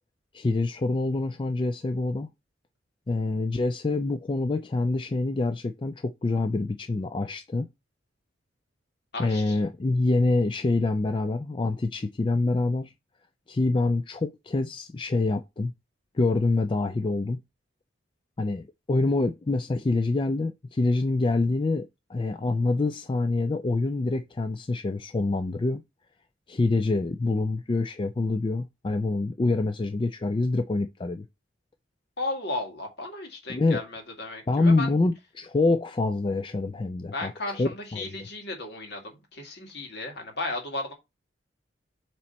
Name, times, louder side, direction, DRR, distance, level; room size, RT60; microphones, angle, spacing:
voice 1, 0.3-2.3 3.1-7.7 9.2-12.9 13.5-15.7 16.1-17.4 18.4-25.8 26.5-31.2 33.5-33.8 34.5-38.1, left 2 dB, 25° left, 0.4 m, -26 dB
voice 2, 9.1-9.6 32.2-35.0 37.1-40.9, left 2 dB, 60° left, 1.9 m, -35 dB
7.1 x 3.2 x 4.2 m
head